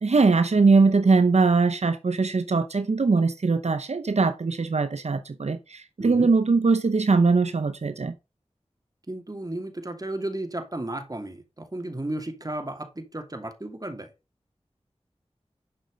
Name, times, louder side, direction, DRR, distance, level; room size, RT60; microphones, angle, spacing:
voice 1, 0.0-8.1, right 4 dB, 80° right, 0.7 m, -21 dB
voice 2, 6.0-6.3 9.1-14.1, right 1 dB, 35° right, 2.8 m, -34 dB
10.5 x 6.2 x 5.3 m
wide cardioid pair, 55°, 11 cm